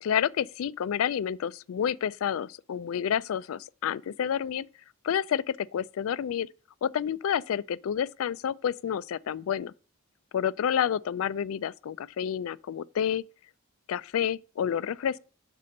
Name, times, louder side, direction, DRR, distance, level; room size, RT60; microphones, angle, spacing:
voice 1, 0.0-4.7 5.0-6.5 6.8-9.7 10.3-13.2 13.9-15.2, left 8 dB, 70° left, 0.3 m, -29 dB
6.1 x 4.3 x 6.3 m
head